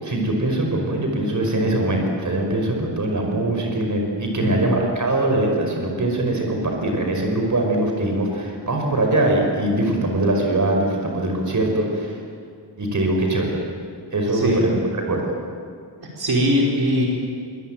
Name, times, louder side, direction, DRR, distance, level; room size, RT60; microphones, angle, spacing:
voice 1, 0.0-12.1 12.8-13.6 14.1-14.8 15.1-15.2, right 1 dB, 45° right, 1 dB, 5.5 m, -22 dB
voice 2, 4.3-4.7 14.3-14.6 16.0-17.1, equal, 60° right, -2 dB, 5.0 m, -21 dB
25.5 x 24.5 x 9.3 m, 2.3 s
wide cardioid pair, 150°, 43 cm